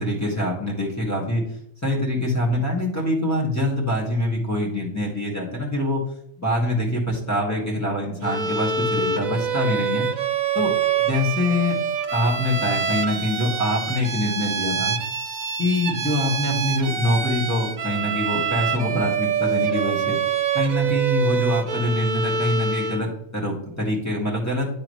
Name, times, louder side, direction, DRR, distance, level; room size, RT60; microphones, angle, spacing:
voice 1, 0.0-1.4 1.8-6.0 6.4-10.1 10.5-10.7 11.0-11.8 12.1-15.0 15.6-20.2 20.5-24.7, left 1 dB, 10° left, -4 dB, 1.9 m, -24 dB
Bowed string instrument, 8.2-23.1, right 6 dB, 70° right, 0.4 m, -26 dB
11.0 x 3.7 x 3.2 m, 0.70 s
omnidirectional pair, 1.4 m